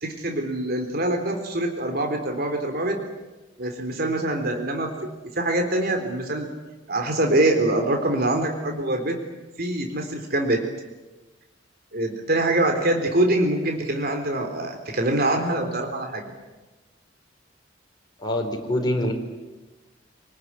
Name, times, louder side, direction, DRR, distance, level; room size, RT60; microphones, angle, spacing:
voice 1, 0.0-3.0 3.6-4.9 5.4-6.5 6.9-9.2 9.6-10.6 11.9-16.2, right 1 dB, 55° right, 4 dB, 3.8 m, -24 dB
voice 2, 18.2-19.1, left 1 dB, 20° left, 1 dB, 4.6 m, -24 dB
27.0 x 19.5 x 9.9 m, 1.1 s
head